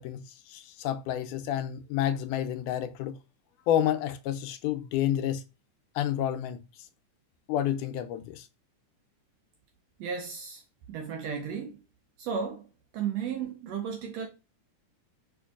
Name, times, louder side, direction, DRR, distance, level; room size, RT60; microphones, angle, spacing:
voice 1, 0.0-3.2 3.7-5.4 6.0-6.6 7.5-8.5, left 11 dB, 85° left, 2.0 m, -29 dB
voice 2, 10.0-10.6 10.9-11.8 12.2-12.7 12.9-14.3, right 7 dB, 75° right, 1.6 m, -34 dB
5.1 x 4.4 x 2.4 m
omnidirectional pair, 3.5 m